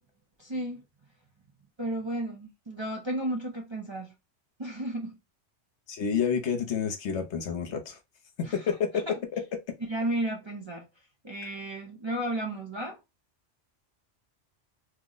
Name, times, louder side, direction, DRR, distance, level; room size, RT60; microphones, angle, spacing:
voice 1, 0.4-0.8 1.8-4.1 4.6-5.2 8.4-8.7 8.9-9.2 9.9-10.9 11.2-13.0, right 1 dB, 35° right, 0.5 m, -33 dB
voice 2, 5.9-8.0 8.4-9.0 9.3-9.4, left 7 dB, 70° left, 1.0 m, -29 dB
2.9 x 2.1 x 3.7 m
omnidirectional pair, 1.2 m